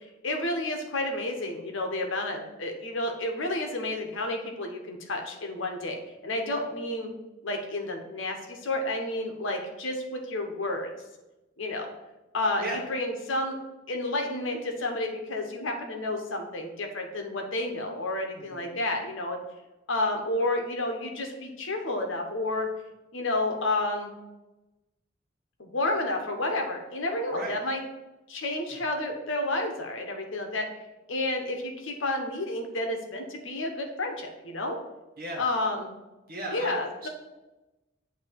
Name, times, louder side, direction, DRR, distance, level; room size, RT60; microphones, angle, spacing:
voice 1, 0.2-6.0 6.2-7.1 7.4-10.9 11.6-11.9 12.3-13.6 13.9-19.4 19.9-22.7 23.1-24.1 25.6-27.8 28.3-30.7 31.1-34.8 35.4-35.9 36.5-37.1, left 2 dB, 70° left, 3 dB, 1.0 m, -30 dB
voice 2, 18.4-18.8 27.3-27.6 28.7-28.8 35.2-35.4 36.3-37.1, right 1 dB, 50° right, 0 dB, 1.3 m, -36 dB
8.3 x 2.8 x 4.5 m, 1.0 s
head